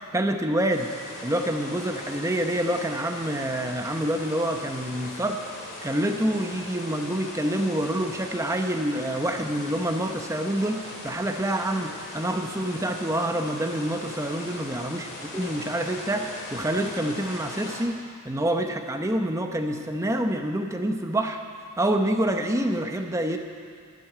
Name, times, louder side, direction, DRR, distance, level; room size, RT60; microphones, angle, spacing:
voice 1, 0.1-0.9 1.2-5.4 5.8-15.1 15.3-18.0 18.2-21.4 21.8-23.4, right 1 dB, 15° right, 4 dB, 0.8 m, -27 dB
sound 1, 0.7-17.8, left 2 dB, 45° left, 2.6 m, -39 dB
13.0 x 8.1 x 9.1 m, 2.2 s
head